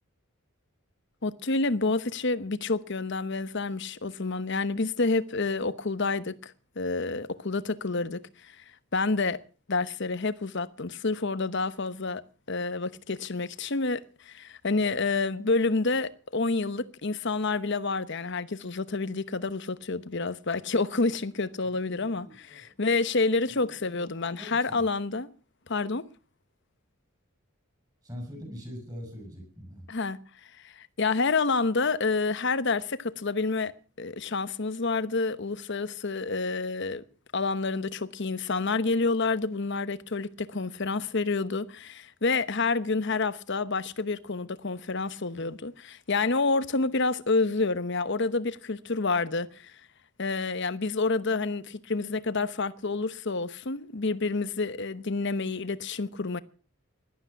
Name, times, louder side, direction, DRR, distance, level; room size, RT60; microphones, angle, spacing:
voice 1, 1.2-8.6 8.9-9.4 9.7-12.2 12.5-25.3 25.7-26.0 29.9-30.2 30.6-33.7 34.0-37.0 37.3-49.8 50.2-56.4, left 3 dB, 55° left, 1.0 m, -28 dB
voice 2, 21.6-22.6 23.5-23.6 23.9-24.8 28.0-29.9, equal, 20° right, 7.3 m, -43 dB
17.5 x 12.5 x 5.8 m
head